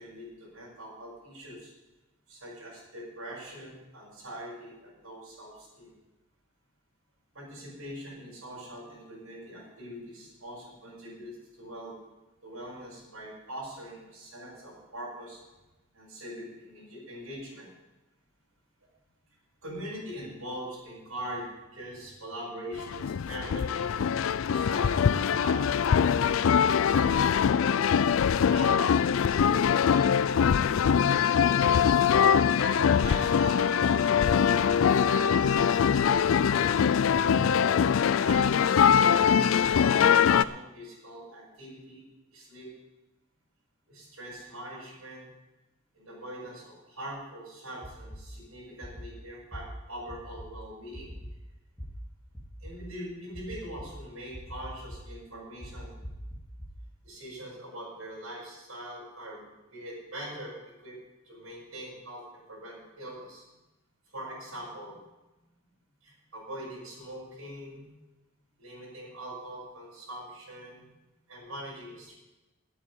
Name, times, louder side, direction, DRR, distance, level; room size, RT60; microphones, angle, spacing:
voice 1, 0.0-1.7 2.3-5.9 7.3-12.0 12.4-15.4 15.9-17.7 19.6-21.4 21.7-23.9 24.4-26.2 26.4-30.1 32.6-37.7 38.1-39.6 39.9-42.0 42.3-42.7 43.9-45.3 45.9-51.1 52.6-55.9 57.0-61.0 61.3-63.4 64.1-65.0 66.0-67.9 68.6-70.9 71.3-72.2, right 1 dB, 85° right, -6 dB, 6.0 m, -42 dB
sound 1, 22.8-40.4, left 7 dB, 70° left, 0.4 m, -23 dB
sound 2, 47.8-48.2 48.8-49.1 49.5-49.6 50.1-50.5 50.9-51.3 51.8-51.9 52.3-52.7 53.3-53.9 54.3-55.0 55.6-56.7, equal, 5° left, 2.3 m, -42 dB
8.9 x 8.8 x 9.6 m, 1.0 s
head